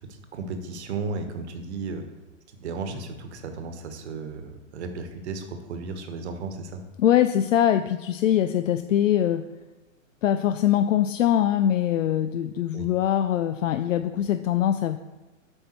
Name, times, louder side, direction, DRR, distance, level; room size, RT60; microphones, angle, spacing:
voice 1, 0.1-2.0 2.6-6.8 12.7-12.9, right 4 dB, 55° right, 7 dB, 1.2 m, -34 dB
sound 1, 2.9-5.0 5.4-5.5, left 3 dB, 20° left, 2.7 m, -48 dB
voice 2, 7.0-9.5 10.2-15.0, left 11 dB, 70° left, 10 dB, 0.5 m, -22 dB
8.0 x 5.5 x 4.4 m, 1.2 s
hypercardioid pair, 160°, 40 cm